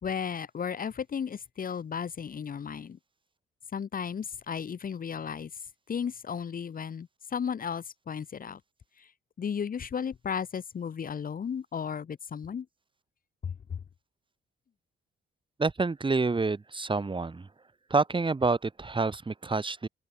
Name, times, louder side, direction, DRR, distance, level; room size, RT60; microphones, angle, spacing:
voice 1, 0.0-3.0 3.7-5.5 5.9-8.6 9.0-9.1 9.4-12.7 13.4-13.8, left 7 dB, 45° left, 1.9 m, -34 dB
voice 2, 15.6-17.5 17.9-19.9, right 3 dB, 25° right, 5.3 m, -28 dB
open air
cardioid pair, 90°, 20 cm